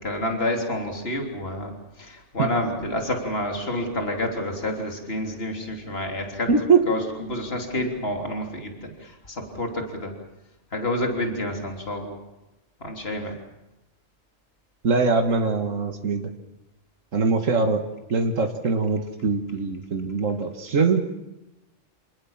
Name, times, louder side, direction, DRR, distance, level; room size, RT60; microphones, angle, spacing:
voice 1, 0.0-1.7 2.0-6.5 6.9-7.0 7.3-8.9 9.3-10.1 10.7-12.2 12.8-13.3, left 1 dB, 50° left, 3 dB, 3.6 m, -28 dB
voice 2, 6.5-6.9 14.8-16.3 17.1-17.8 18.1-21.0, right 4 dB, 90° right, 4 dB, 2.0 m, -22 dB
28.0 x 19.5 x 7.3 m, 0.97 s
omnidirectional pair, 1.3 m